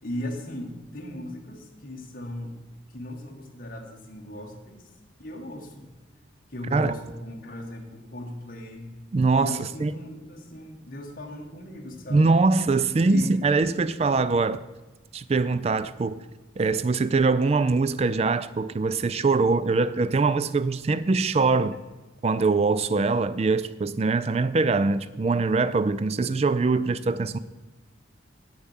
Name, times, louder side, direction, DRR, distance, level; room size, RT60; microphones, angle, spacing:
voice 1, 0.0-2.6 2.9-4.9 5.2-5.9 6.5-8.9 9.4-12.3 13.1-13.4, left 1 dB, 45° left, 1.4 m, -37 dB
voice 2, 9.1-9.9 12.1-14.6 15.1-16.2 16.6-21.8 22.2-27.4, right 3 dB, 30° right, 0.3 m, -23 dB
8.0 x 7.0 x 7.3 m
head